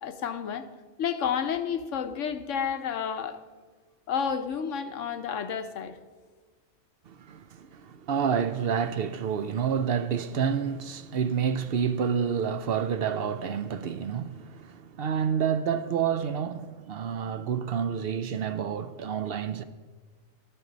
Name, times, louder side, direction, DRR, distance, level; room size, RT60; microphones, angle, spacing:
voice 1, 0.0-0.7 1.0-3.4 4.1-6.0, left 7 dB, 70° left, 1.0 m, -30 dB
voice 2, 7.1-19.6, right 7 dB, 60° right, 0.6 m, -29 dB
14.0 x 13.5 x 3.9 m
omnidirectional pair, 1.4 m